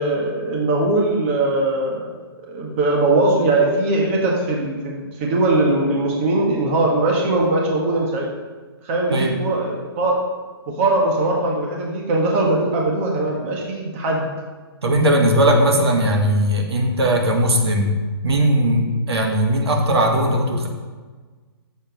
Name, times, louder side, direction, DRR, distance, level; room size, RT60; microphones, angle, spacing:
voice 1, 0.0-2.1 2.5-8.3 8.8-10.2 10.7-14.3, right 2 dB, 30° right, -1 dB, 1.5 m, -20 dB
voice 2, 14.8-17.9 18.2-20.7, right 1 dB, 75° right, 2 dB, 1.9 m, -18 dB
7.6 x 7.1 x 5.3 m, 1.4 s
hypercardioid pair, 160°, 13 cm